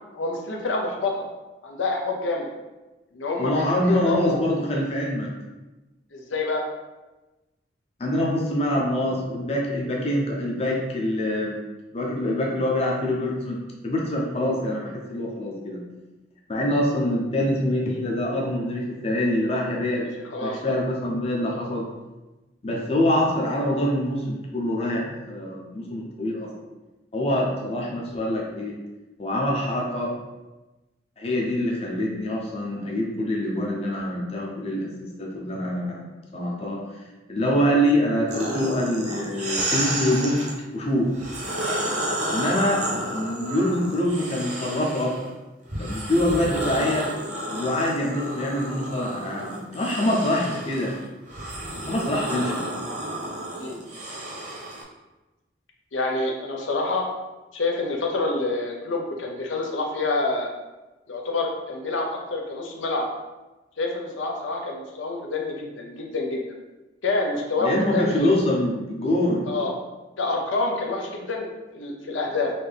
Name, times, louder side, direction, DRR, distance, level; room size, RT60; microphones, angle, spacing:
voice 1, 0.1-1.2 1.6-2.5 3.1-4.4 6.1-6.6 20.3-20.8 53.6-53.8 55.9-57.1 57.5-60.5 61.1-63.1 63.8-66.6 67.0-68.3 69.5-69.7 70.2-71.5 71.7-72.5, left 3 dB, 85° left, 0 dB, 0.7 m, -27 dB
voice 2, 3.4-5.3 8.0-11.6 11.9-13.6 13.8-15.8 16.5-20.0 20.4-21.8 22.6-26.5 27.1-28.7 29.2-30.1 31.2-36.8 37.3-40.4 40.7-41.1 42.3-45.1 45.8-47.1 47.5-50.9 51.8-52.6 67.6-69.5, left 1 dB, 30° left, -2 dB, 0.6 m, -25 dB
sound 1, 38.3-40.5 41.1-45.2 45.7-54.8, right 1 dB, 40° right, 0.8 m, -31 dB
4.2 x 2.7 x 3.4 m, 1.1 s
head